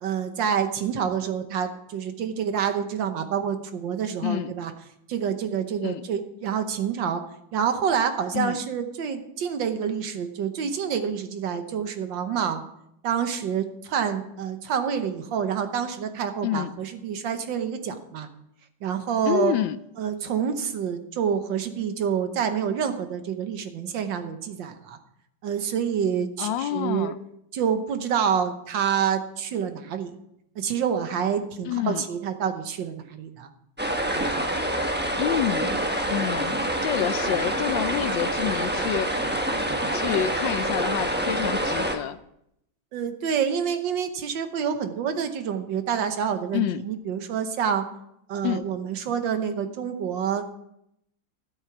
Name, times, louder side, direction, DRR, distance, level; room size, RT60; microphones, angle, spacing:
voice 1, 0.0-4.7 5.1-7.2 7.5-12.6 13.0-18.3 18.8-19.5 20.0-25.0 25.4-27.1 27.5-30.1 30.5-33.5 34.1-34.4 42.9-47.8 48.3-50.4, right 7 dB, 70° right, 8 dB, 1.7 m, -27 dB
voice 2, 8.3-8.7 16.4-16.7 19.3-19.8 26.4-27.2 31.7-32.0 35.2-35.8 36.1-36.5 36.8-39.3 39.9-42.2 46.5-46.8 48.4-48.6, left 11 dB, 75° left, 14 dB, 1.2 m, -28 dB
sound 1, 33.8-42.0, right 1 dB, 10° right, 0.5 m, -26 dB
12.5 x 8.0 x 6.0 m, 0.78 s
omnidirectional pair, 2.2 m